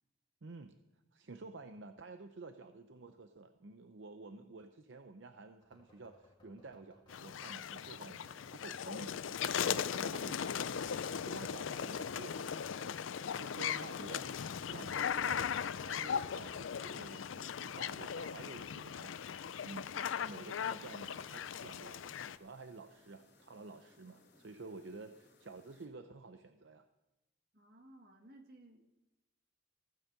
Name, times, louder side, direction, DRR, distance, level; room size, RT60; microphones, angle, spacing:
voice 1, 0.4-0.8 1.1-9.2 9.6-10.9 11.2-13.0 13.4-14.3 14.7-19.3 19.6-26.9, right 3 dB, 70° right, 8 dB, 0.7 m, -51 dB
sound 1, 5.6-23.1, left 2 dB, 25° left, 2.0 m, -68 dB
sound 2, 7.1-22.4, left 7 dB, 85° left, 0.5 m, -38 dB
sound 3, 20.2-25.9, left 2 dB, 55° left, 3.7 m, -67 dB
voice 2, 27.5-28.8, right 1 dB, 50° right, 4 dB, 1.9 m, -58 dB
15.5 x 8.9 x 6.7 m, 0.99 s
head